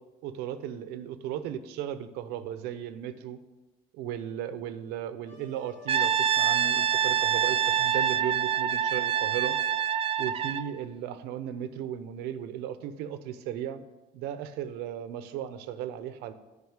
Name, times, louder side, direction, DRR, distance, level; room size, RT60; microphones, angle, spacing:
voice 1, 0.2-3.4 3.9-9.5 10.2-13.8 14.1-16.3, right 10 dB, 85° right, 11 dB, 0.8 m, -36 dB
Wind instrument woodwind instrument, 5.3-10.8, left 6 dB, 45° left, 1.4 m, -53 dB
Brass instrument, 5.9-10.7, right 9 dB, 35° right, 0.5 m, -26 dB
9.6 x 5.5 x 7.2 m, 1.1 s
cardioid pair, 105°, 16 cm